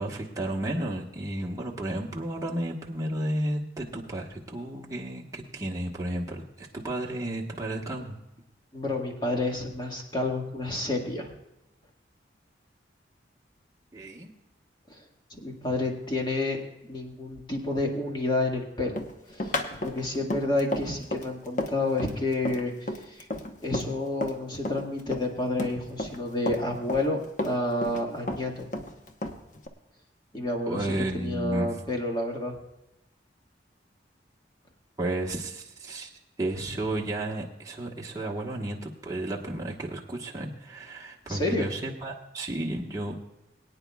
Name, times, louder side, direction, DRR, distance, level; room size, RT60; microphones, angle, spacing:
voice 1, 0.0-8.2 13.9-14.3 30.7-31.8 35.0-36.1 36.4-43.2, right 1 dB, 20° right, -2 dB, 1.3 m, -32 dB
voice 2, 8.7-11.3 14.9-15.0 15.3-19.0 19.3-23.3 23.6-28.7 30.3-32.5 41.3-41.7, left 2 dB, 25° left, 1 dB, 1.8 m, -30 dB
Run, 19.0-24.4 24.6-26.2 26.5-28.0 28.3-29.7, left 1 dB, 45° left, 0.9 m, -32 dB
22.5 x 9.4 x 2.3 m, 0.93 s
head